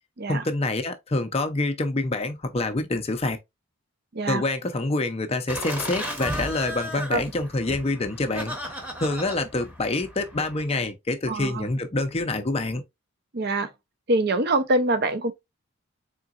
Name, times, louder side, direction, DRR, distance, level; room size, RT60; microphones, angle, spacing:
voice 1, 0.3-3.4 4.3-8.7 9.0-12.8, left 2 dB, 25° left, 0.5 m, -26 dB
Laughter, 5.5-10.6, equal, 10° right, 0.8 m, -35 dB
voice 2, 11.3-11.7 13.3-13.7 14.1-15.3, right 2 dB, 45° right, 0.6 m, -24 dB
3.8 x 3.7 x 2.4 m
head